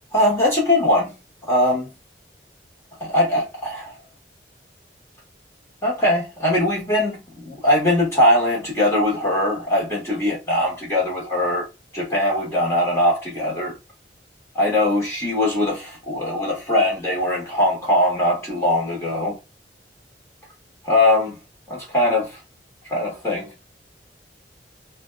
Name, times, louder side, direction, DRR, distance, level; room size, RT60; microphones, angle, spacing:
voice 1, 0.1-1.1 1.5-1.9 3.0-3.9 5.8-11.7 11.9-13.7 14.5-19.4 20.8-21.3 21.7-22.4 22.9-23.5, left 1 dB, 15° left, 0.9 m, -21 dB
2.6 x 2.2 x 3.1 m
head